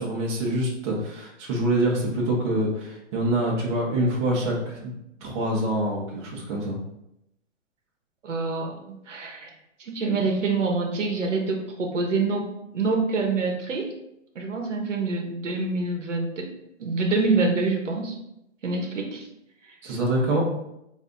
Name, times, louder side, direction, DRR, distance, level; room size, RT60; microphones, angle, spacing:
voice 1, 0.0-4.9 5.2-6.8 19.8-20.4, right 1 dB, 25° right, -4 dB, 0.9 m, -25 dB
voice 2, 8.2-9.5 9.8-13.9 14.3-16.5 16.8-18.2 18.6-19.3 19.7-19.8, right 3 dB, 80° right, 2 dB, 1.0 m, -26 dB
4.1 x 2.7 x 3.6 m, 0.83 s
hypercardioid pair, 145°, 37 cm